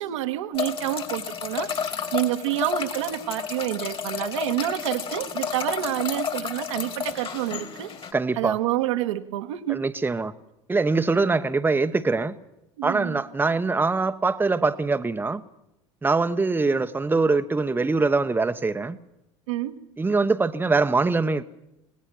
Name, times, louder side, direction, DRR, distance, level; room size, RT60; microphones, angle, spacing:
voice 1, 0.0-7.9 8.3-9.9 12.8-13.2 19.5-19.8, right 14 dB, 75° right, 1.5 m, -28 dB
sound 1, 0.5-8.1, left 7 dB, 35° left, 2.6 m, -31 dB
voice 2, 8.1-8.6 9.7-10.3 10.7-12.3 12.8-15.4 16.0-19.0 20.0-21.4, right 3 dB, 10° right, 1.0 m, -23 dB
26.0 x 18.0 x 6.2 m
hypercardioid pair, 80°, 16 cm